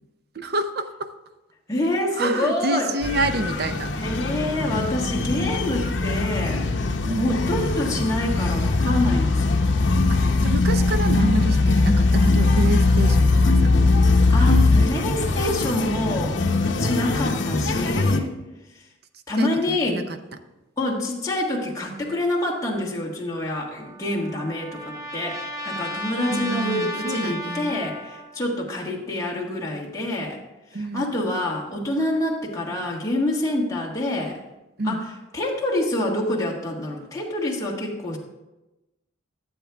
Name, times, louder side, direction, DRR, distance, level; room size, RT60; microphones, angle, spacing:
voice 1, 0.3-1.1 2.1-3.9 7.1-7.4 10.1-13.7 19.4-20.2 26.3-27.8 30.7-31.0 34.8-35.0, right 2 dB, 50° right, 9 dB, 0.6 m, -28 dB
voice 2, 1.7-2.9 4.0-6.7 7.2-9.6 14.3-18.3 19.3-20.0 20.8-30.4 30.8-34.4 34.8-35.1 35.3-38.2, left 1 dB, 15° left, -3 dB, 1.5 m, -26 dB
sound 1, 3.0-18.2, left 2 dB, 60° left, 0.9 m, -26 dB
sound 2, 3.5-14.9, left 3 dB, 40° left, 0.5 m, -21 dB
Trumpet, 23.6-28.4, equal, 15° right, 0.8 m, -34 dB
12.0 x 7.9 x 3.5 m, 1.0 s
head